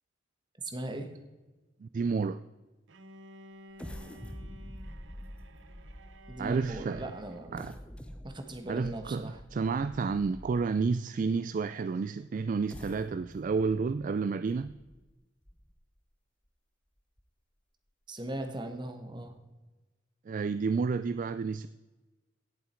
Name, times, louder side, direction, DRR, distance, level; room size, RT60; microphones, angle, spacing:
voice 1, 0.6-1.1 6.3-7.8 8.2-9.4 18.1-19.4, right 1 dB, 25° right, 1.3 m, -39 dB
voice 2, 1.8-2.4 6.4-7.0 7.5-7.7 8.7-14.7 20.3-21.7, right 4 dB, 45° right, 0.3 m, -30 dB
Bowed string instrument, 2.9-7.7, equal, 70° right, 0.8 m, -53 dB
sound 1, 3.8-10.9 11.5-11.6 12.5-16.0 16.5-16.6 17.0-17.2, equal, 5° left, 0.7 m, -47 dB
17.0 x 7.5 x 4.5 m
head